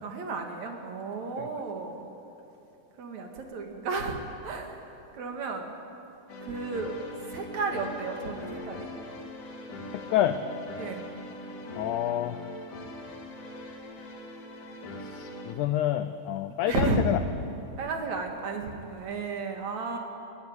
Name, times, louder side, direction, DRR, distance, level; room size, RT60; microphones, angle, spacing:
voice 1, 0.0-2.0 3.0-4.2 4.4-4.8 5.1-5.7 6.4-7.0 7.3-8.9 10.8-11.0 16.7-17.0 17.8-20.0, right 4 dB, 55° right, 3 dB, 3.1 m, -33 dB
sound 1, 6.3-15.5, left 1 dB, 60° left, 3.7 m, -41 dB
voice 2, 9.9-10.4 11.7-12.4 14.9-17.2, left 12 dB, 80° left, 10 dB, 1.7 m, -28 dB
23.0 x 14.5 x 9.7 m, 2.9 s
omnidirectional pair, 4.2 m